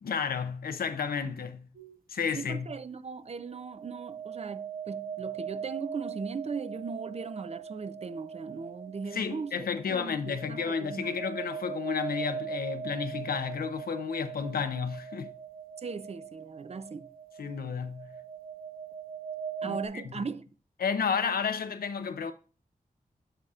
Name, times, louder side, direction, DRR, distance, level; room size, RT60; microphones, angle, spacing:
voice 1, 0.0-1.7 2.1-2.7 9.1-15.3 17.4-18.1 19.6-20.0 20.8-22.3, left 6 dB, 90° left, 0.8 m, -32 dB
sound 1, 1.7-2.0 3.5-19.9, right 8 dB, 75° right, 1.1 m, -41 dB
voice 2, 2.4-11.2 15.8-17.1 19.6-20.4, right 5 dB, 45° right, 0.6 m, -38 dB
9.1 x 6.4 x 2.4 m
wide cardioid pair, 75°, 15 cm